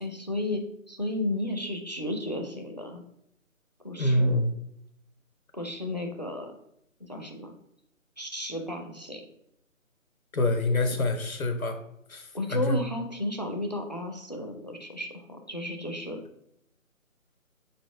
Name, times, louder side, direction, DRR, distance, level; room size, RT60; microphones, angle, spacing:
voice 1, 0.0-0.6 0.9-3.0 3.8-4.5 5.5-6.6 7.0-7.5 8.2-9.2 12.3-16.2, left 1 dB, 35° left, 4 dB, 0.4 m, -33 dB
voice 2, 4.0-4.5 10.3-11.8 12.1-12.2 12.5-12.8, left 1 dB, 90° left, 6 dB, 0.9 m, -25 dB
4.2 x 3.9 x 3.2 m, 0.75 s
figure-of-eight pair, 155°, 41 cm